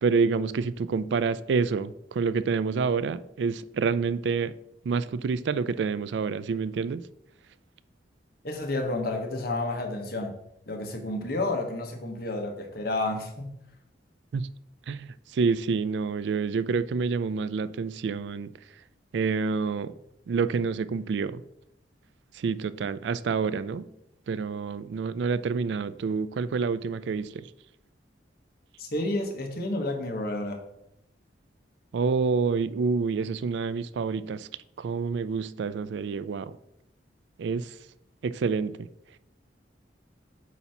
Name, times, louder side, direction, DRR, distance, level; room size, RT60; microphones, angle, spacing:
voice 1, 0.0-4.5 4.8-7.0 14.3-14.5 14.9-18.5 19.1-19.9 20.3-21.4 22.3-23.9 24.3-27.5 31.9-34.5 34.8-36.5 37.4-37.8 38.2-38.9, right 5 dB, 70° right, 0.3 m, -28 dB
voice 2, 8.4-10.3 10.7-13.5 28.8-30.6, left 2 dB, 55° left, 1.2 m, -30 dB
8.2 x 2.8 x 5.7 m
head